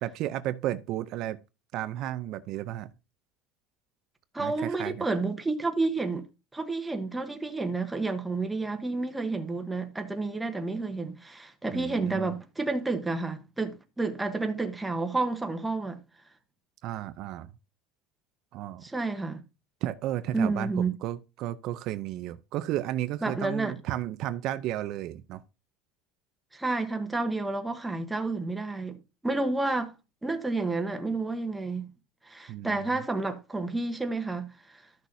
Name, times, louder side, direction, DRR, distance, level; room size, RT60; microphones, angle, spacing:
voice 1, 0.0-1.4 1.7-2.9 4.4-5.1 11.7-12.3 16.8-17.5 18.5-18.8 19.8-25.4 32.5-33.0, right 13 dB, 50° right, 0.5 m, -33 dB
voice 2, 4.3-6.2 6.5-16.0 18.8-19.4 20.3-21.0 23.2-23.7 26.5-29.9 30.2-31.9 32.3-34.8, right 3 dB, 5° right, 1.0 m, -30 dB
13.0 x 6.2 x 2.7 m
cardioid pair, 160°, 0 cm